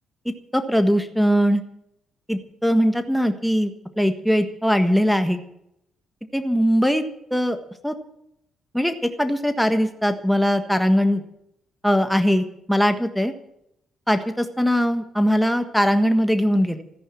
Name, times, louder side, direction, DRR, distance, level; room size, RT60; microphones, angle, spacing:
voice 1, 0.2-1.6 2.3-5.4 6.3-7.0 7.3-7.6 7.8-7.9 8.7-11.2 11.8-13.3 14.1-16.8, equal, ahead, 7 dB, 1.5 m, -20 dB
14.0 x 10.5 x 8.4 m, 0.78 s
cardioid pair, 90°, 0 cm